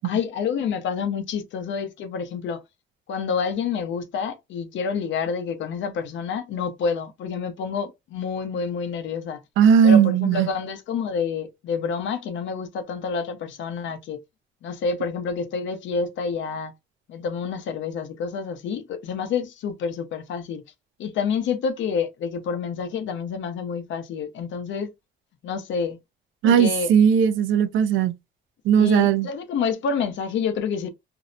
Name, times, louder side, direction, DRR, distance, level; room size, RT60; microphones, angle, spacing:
voice 1, 0.0-2.6 3.1-9.4 9.8-14.2 14.6-16.7 17.1-20.6 21.0-24.9 25.4-26.0 26.4-26.9 28.8-30.9, left 5 dB, 70° left, 0.6 m, -28 dB
voice 2, 9.6-10.5 26.4-28.1 28.7-29.3, right 7 dB, 80° right, 0.4 m, -17 dB
2.6 x 2.0 x 2.5 m
cardioid pair, 90°, 20 cm